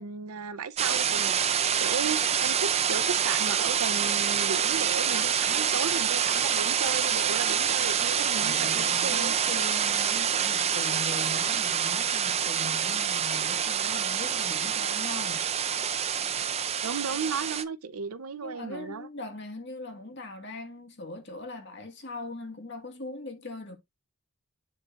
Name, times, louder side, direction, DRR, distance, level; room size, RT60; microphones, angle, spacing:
voice 1, 0.0-9.3 16.8-19.1, right 5 dB, 85° right, 0.6 m, -35 dB
sound 1, 0.8-17.6, right 8 dB, 30° right, 0.5 m, -26 dB
voice 2, 8.4-15.4 18.4-23.8, left 2 dB, 50° left, 1.8 m, -40 dB
10.5 x 3.8 x 2.5 m
head